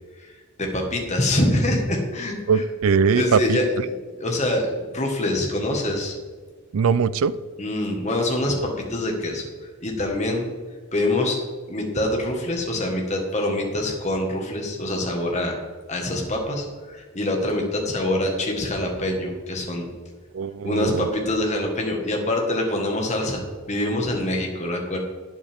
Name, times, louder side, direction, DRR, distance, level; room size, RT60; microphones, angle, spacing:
voice 1, 0.2-2.6 3.1-3.8 4.2-6.2 7.6-10.5 10.9-11.4 11.7-15.6 15.9-19.9 20.6-23.4 23.7-25.0, left 1 dB, 35° left, 1 dB, 1.6 m, -25 dB
voice 2, 2.5-3.6 6.7-7.3 20.3-21.1, right 6 dB, 80° right, 17 dB, 0.4 m, -21 dB
12.0 x 8.7 x 3.6 m, 1.5 s
head